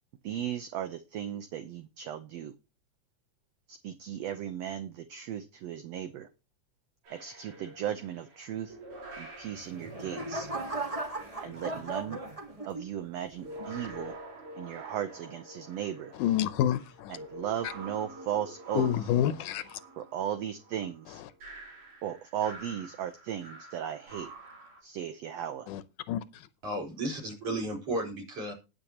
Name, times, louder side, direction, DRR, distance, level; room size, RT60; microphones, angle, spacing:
voice 1, 0.2-2.5 3.7-6.3 7.1-8.8 9.2-10.5 11.4-12.2 12.7-14.2 14.6-16.1 17.1-18.9 20.0-21.2 22.0-24.3 24.8-25.7, right 10 dB, 70° right, 1.7 m, -36 dB
sound 1, 7.0-12.4 13.1-24.8, right 1 dB, 90° right, 5.2 m, -48 dB
sound 2, 9.5-13.0 13.6-13.9, right 2 dB, 20° right, 0.8 m, -37 dB
voice 2, 16.2-17.2 18.8-19.8 25.7-25.8 26.1-26.4, left 11 dB, 85° left, 2.3 m, -28 dB
voice 3, 26.6-28.5, right 1 dB, 50° right, 5.2 m, -33 dB
19.5 x 6.9 x 2.9 m
omnidirectional pair, 3.6 m